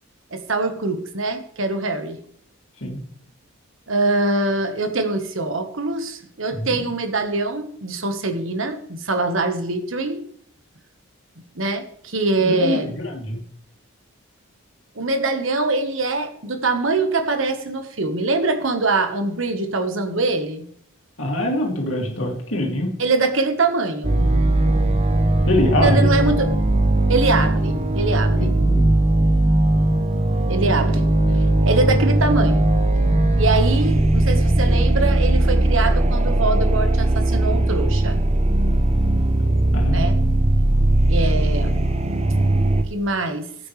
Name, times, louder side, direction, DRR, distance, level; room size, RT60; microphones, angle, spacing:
voice 1, 0.3-2.2 3.9-10.2 11.5-12.9 14.9-20.6 23.0-24.2 25.8-26.5 27.1-28.5 30.5-31.1 31.6-32.7 33.4-38.2 39.9-40.2 41.1-41.8 42.9-43.5, right 3 dB, 65° right, 7 dB, 1.5 m, -23 dB
voice 2, 6.5-6.8 12.4-13.4 21.2-22.9 25.5-26.1 28.3-28.9 39.7-40.0, left 1 dB, 65° left, 0 dB, 2.8 m, -24 dB
sound 1, 24.0-42.8, right 1 dB, 30° right, 0.8 m, -18 dB
14.5 x 8.9 x 3.4 m, 0.66 s
head